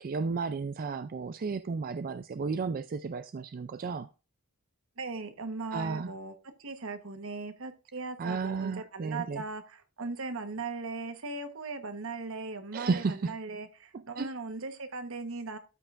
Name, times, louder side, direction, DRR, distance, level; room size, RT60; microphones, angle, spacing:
voice 1, 0.0-4.1 5.7-6.1 8.2-9.4 12.7-13.3 13.9-14.3, right 4 dB, 40° right, 0.3 m, -33 dB
voice 2, 5.0-6.3 6.6-15.6, right 3 dB, 65° right, 1.2 m, -38 dB
13.0 x 5.5 x 2.5 m
head